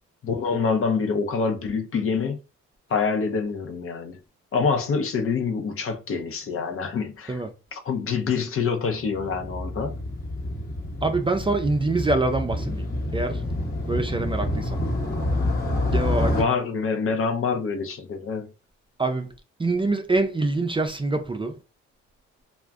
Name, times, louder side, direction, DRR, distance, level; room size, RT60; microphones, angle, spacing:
voice 1, 0.2-2.4 2.9-4.2 4.5-7.4 7.7-10.0 16.2-18.5, left 5 dB, 45° left, 0.6 m, -26 dB
Motorcycle, 9.0-16.4, left 1 dB, 30° left, 1.0 m, -28 dB
voice 2, 11.0-13.4 13.8-14.8 15.9-16.4 19.0-19.3 19.6-21.5, right 2 dB, 15° right, 0.4 m, -25 dB
2.4 x 2.1 x 3.4 m
cardioid pair, 75°, 29 cm